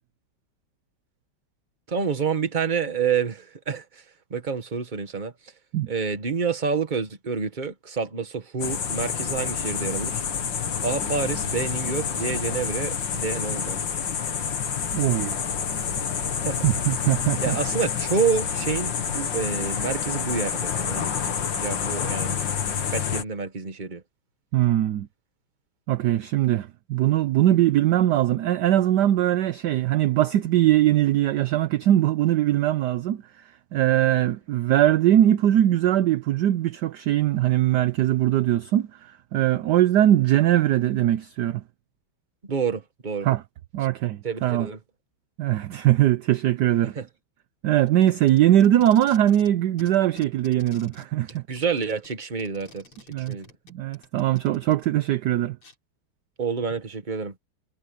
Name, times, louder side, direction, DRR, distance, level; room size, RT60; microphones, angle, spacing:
voice 1, 1.9-4.0 4.3-5.3 5.9-10.2 10.8-13.8 16.4-16.7 17.4-22.4 22.7-24.0 42.4-43.3 44.2-44.8 46.8-47.1 51.3-52.8 53.2-53.5 56.4-57.3, right 5 dB, 25° right, 1.4 m, -28 dB
sound 1, 8.6-23.2, left 7 dB, 60° left, 2.3 m, -28 dB
voice 2, 14.9-15.4 16.6-17.6 24.5-25.1 25.9-33.2 33.7-41.6 43.2-43.4 43.7-44.7 45.4-47.0 47.6-51.4 53.1-53.4 53.7-55.6, right 13 dB, 70° right, 1.0 m, -21 dB
Packing tape duct tape, 47.8-49.5 49.8-54.9 55.6-55.7, left 3 dB, 80° left, 6.0 m, -49 dB
omnidirectional pair, 2.3 m